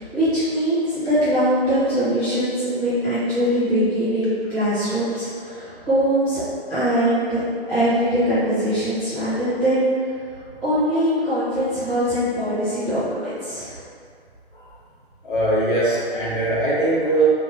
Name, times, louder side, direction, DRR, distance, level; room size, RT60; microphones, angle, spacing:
voice 1, 0.0-6.4 6.7-9.8 10.3-13.8, equal, ahead, -20 dB, 0.5 m, -22 dB
voice 2, 15.2-17.3, right 2 dB, 50° left, -9 dB, 1.3 m, -21 dB
3.4 x 2.5 x 2.7 m, 2.2 s
figure-of-eight pair, 140°, 32 cm